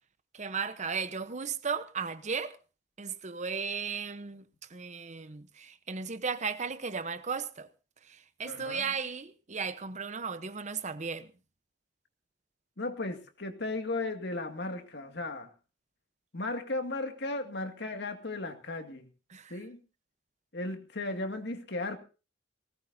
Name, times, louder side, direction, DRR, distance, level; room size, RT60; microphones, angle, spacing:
voice 1, 0.3-2.6 3.0-7.7 8.0-11.3 19.3-19.6, right 5 dB, 40° right, 0.9 m, -35 dB
voice 2, 8.5-8.9 12.8-15.5 16.3-19.1 19.5-19.8 20.5-22.0, left 2 dB, 65° left, 2.1 m, -35 dB
19.5 x 18.0 x 2.7 m
head